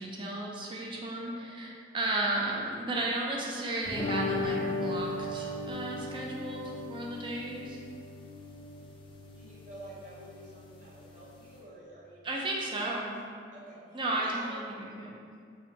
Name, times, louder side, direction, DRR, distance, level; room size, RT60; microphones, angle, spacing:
voice 1, 0.0-6.6 6.9-7.8 12.2-13.1 13.9-15.2, right 2 dB, 30° right, -2 dB, 0.5 m, -34 dB
voice 2, 1.2-1.6 9.3-12.4 12.7-12.8 13.5-14.5, right 1 dB, 45° right, -6 dB, 0.9 m, -49 dB
sound 1, 3.9-11.6, left 2 dB, 30° left, 0.4 m, -37 dB
4.8 x 2.6 x 2.8 m, 2.2 s
head